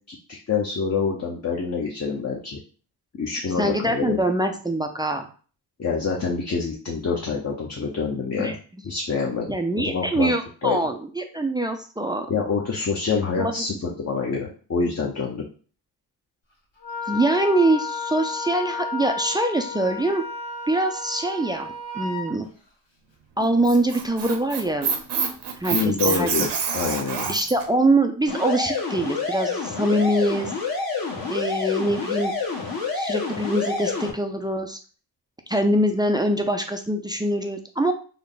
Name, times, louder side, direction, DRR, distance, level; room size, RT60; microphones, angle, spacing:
voice 1, 0.1-2.6 3.2-4.2 5.8-8.5 8.8-10.3 10.6-10.8 12.3-15.4 25.7-27.3, left 5 dB, 40° left, -2 dB, 0.8 m, -26 dB
voice 2, 3.6-5.3 8.4-8.6 9.5-12.3 13.4-13.6 17.1-20.2 20.7-21.7 21.9-22.5 23.4-24.9 25.6-26.3 27.3-30.5 31.3-32.3 33.0-34.8 35.5-37.9, right 1 dB, 10° right, 5 dB, 0.3 m, -23 dB
Wind instrument woodwind instrument, 16.8-22.3, left 3 dB, 85° left, 1.7 m, -32 dB
Squeak, 23.4-27.6, right 6 dB, 70° right, 0.8 m, -27 dB
sound 1, 28.3-34.1, left 4 dB, 55° left, 1.4 m, -28 dB
3.4 x 2.2 x 3.9 m, 0.39 s
cardioid pair, 95°, 42 cm